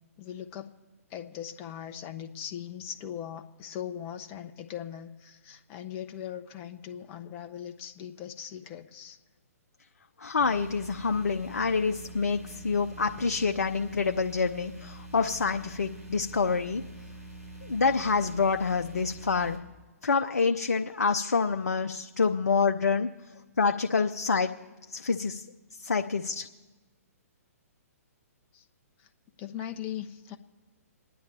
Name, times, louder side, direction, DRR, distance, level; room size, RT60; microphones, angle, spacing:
voice 1, 0.2-0.7 1.1-9.2 28.5-28.6 29.0-29.1 29.4-30.4, left 10 dB, 30° left, 5 dB, 0.9 m, -40 dB
voice 2, 10.2-16.8 17.6-19.6 20.0-23.1 23.6-24.5 24.9-25.5 25.8-26.5, left 4 dB, 80° left, 5 dB, 0.7 m, -27 dB
sound 1, 10.4-19.6, right 2 dB, 80° right, 3.9 m, -45 dB
29.0 x 10.0 x 3.3 m, 1.3 s
hypercardioid pair, 130°, 8 cm